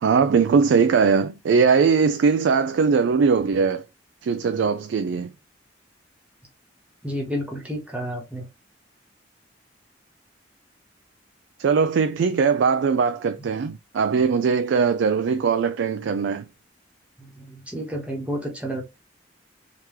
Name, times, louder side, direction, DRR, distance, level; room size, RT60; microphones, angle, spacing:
voice 1, 0.0-3.8 4.2-5.3 11.6-16.5, right 5 dB, 75° right, 0.3 m, -20 dB
voice 2, 7.0-8.5 17.2-18.8, equal, 10° right, 1.1 m, -30 dB
3.7 x 2.9 x 3.0 m
head